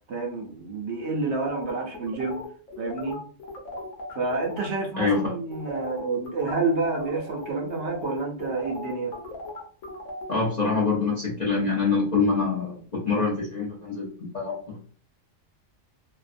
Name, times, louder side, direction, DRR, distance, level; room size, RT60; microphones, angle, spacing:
voice 1, 0.1-2.4 2.8-3.2 4.1-9.1, right 3 dB, 65° right, 0.9 m, -29 dB
sound 1, 1.4-4.7 5.0-5.2 5.5-10.3, left 2 dB, 90° left, 1.2 m, -38 dB
voice 2, 5.0-5.3 10.3-14.9, left 4 dB, 40° left, 0.8 m, -25 dB
2.7 x 2.3 x 2.5 m
omnidirectional pair, 1.3 m